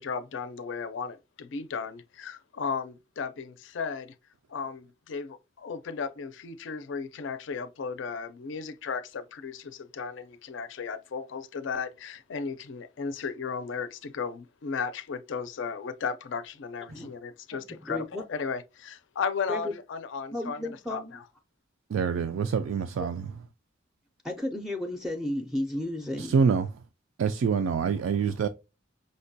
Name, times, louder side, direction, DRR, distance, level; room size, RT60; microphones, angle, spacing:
voice 1, 0.0-4.1 4.5-21.2, left 5 dB, 70° left, 0.4 m, -35 dB
voice 2, 17.8-18.2 19.5-19.6 20.3-21.2 24.2-26.4, left 1 dB, ahead, 0.4 m, -33 dB
voice 3, 21.9-23.3 26.2-26.7 27.2-28.5, right 6 dB, 85° right, 0.3 m, -26 dB
5.2 x 2.2 x 2.6 m
head